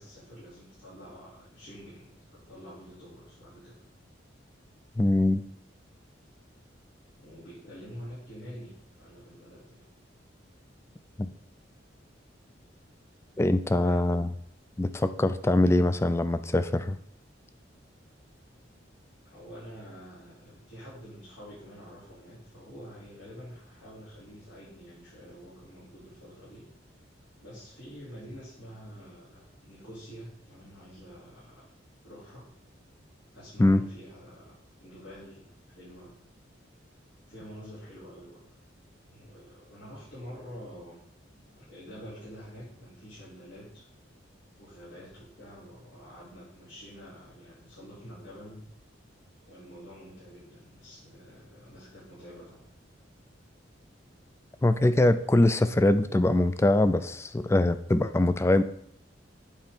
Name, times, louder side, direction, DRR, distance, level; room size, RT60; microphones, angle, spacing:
voice 1, 0.0-3.8 7.2-9.8 13.6-14.0 19.2-26.7 27.4-31.6 32.0-32.5 33.3-36.1 37.3-38.6 39.1-41.0 41.3-43.9 44.6-48.7 49.4-52.7, equal, 65° left, -11 dB, 3.4 m, -47 dB
voice 2, 5.0-5.4 11.2-11.3 13.4-14.3 14.8-17.0 33.6-33.8 54.6-58.6, left 1 dB, 15° left, 12 dB, 0.3 m, -23 dB
8.3 x 4.4 x 5.2 m, 0.69 s
head